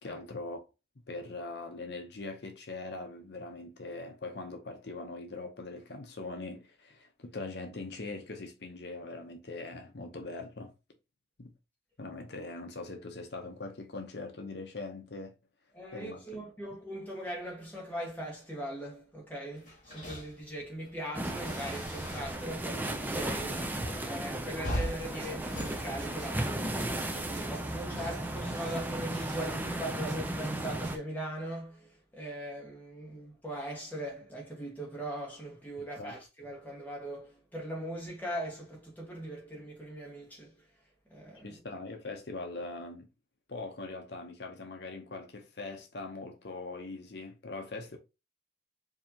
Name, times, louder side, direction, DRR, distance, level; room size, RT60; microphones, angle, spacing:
voice 1, 0.0-0.6 1.0-10.7 11.4-11.5 12.0-15.3 15.9-16.2 28.0-28.1 36.0-36.2 41.4-43.1 43.5-48.0, left 3 dB, 60° left, 0.7 m, -41 dB
voice 2, 15.7-23.8 24.0-26.8 27.1-40.6 41.1-41.6, right 1 dB, 10° left, 1.5 m, -40 dB
sound 1, 19.6-22.5 22.8-26.7, equal, 40° left, 2.4 m, -41 dB
sound 2, 21.1-31.0, right 1 dB, 10° right, 0.4 m, -35 dB
sound 3, 24.8-31.0, right 4 dB, 80° right, 0.7 m, -51 dB
4.8 x 2.8 x 2.8 m
head